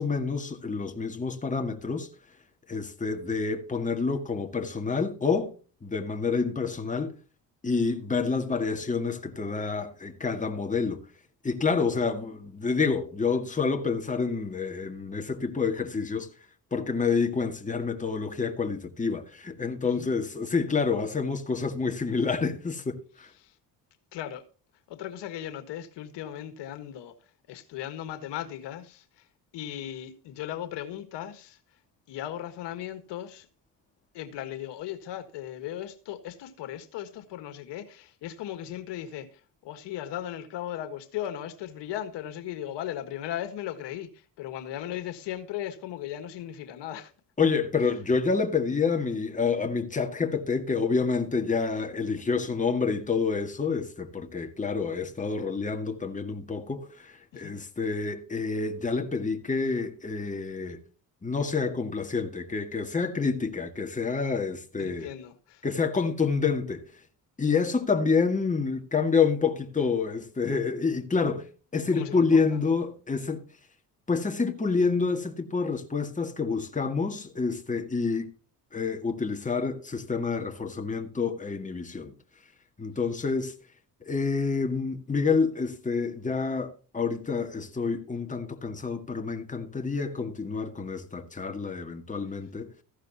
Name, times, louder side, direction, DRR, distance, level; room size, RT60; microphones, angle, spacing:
voice 1, 0.0-2.1 2.7-5.5 5.8-7.1 7.6-11.1 11.4-16.3 16.7-23.3 47.4-60.8 61.2-65.1 65.6-66.9 67.4-73.4 74.1-78.3 78.7-82.1 82.8-83.5 84.0-92.7, left 4 dB, 20° left, 2.0 m, -28 dB
voice 2, 24.1-24.4 24.9-27.1 27.5-29.2 29.5-31.6 32.1-33.5 34.1-39.3 39.6-47.1 57.3-57.6 64.8-65.6 71.9-72.4, left 11 dB, 80° left, 1.7 m, -37 dB
15.0 x 11.5 x 2.9 m
cardioid pair, 95°, 42 cm